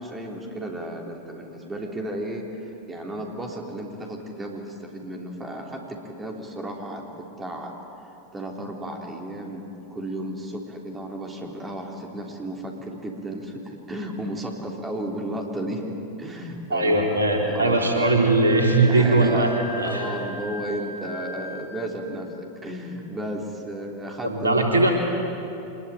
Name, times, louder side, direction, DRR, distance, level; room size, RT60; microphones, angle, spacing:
voice 1, 0.0-7.7 8.3-18.0 18.9-19.5 19.8-24.8, right 1 dB, 15° right, 1 dB, 3.5 m, -33 dB
voice 2, 16.7-19.5 19.8-20.0 24.2-24.9, right 2 dB, 75° right, 1 dB, 3.8 m, -20 dB
Wind instrument woodwind instrument, 18.0-21.9, left 1 dB, 55° right, 6.4 m, -38 dB
25.5 x 21.5 x 9.2 m, 2.8 s
figure-of-eight pair, 90°, 0 cm